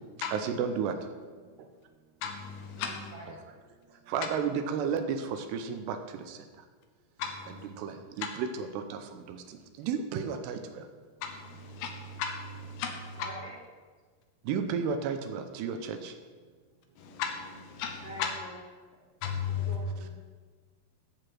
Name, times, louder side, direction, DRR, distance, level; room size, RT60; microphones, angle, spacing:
voice 1, 0.3-0.9 4.1-6.0 6.3-6.4 7.8-9.0 9.3-9.4 9.8-10.8 14.5-16.1, right 6 dB, 85° right, 7 dB, 2.8 m, -32 dB
voice 2, 2.2-3.1 7.2-7.7 11.2-13.3 17.0-18.3 19.2-19.8, left 7 dB, 75° left, 4 dB, 2.7 m, -35 dB
voice 3, 2.7-3.4 13.1-13.5 18.0-18.5 19.4-20.1, right 1 dB, 30° right, -6 dB, 1.7 m, -45 dB
13.5 x 5.0 x 6.0 m, 1.4 s
omnidirectional pair, 4.8 m